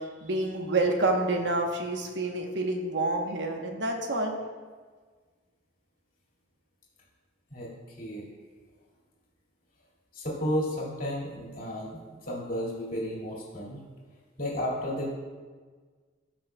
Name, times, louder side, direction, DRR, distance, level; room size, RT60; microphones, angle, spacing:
voice 1, 0.0-4.3, right 2 dB, 70° right, 3 dB, 1.0 m, -28 dB
voice 2, 10.1-13.8 14.4-15.1, equal, 50° left, -4 dB, 2.1 m, -32 dB
13.5 x 6.1 x 2.2 m, 1.5 s
head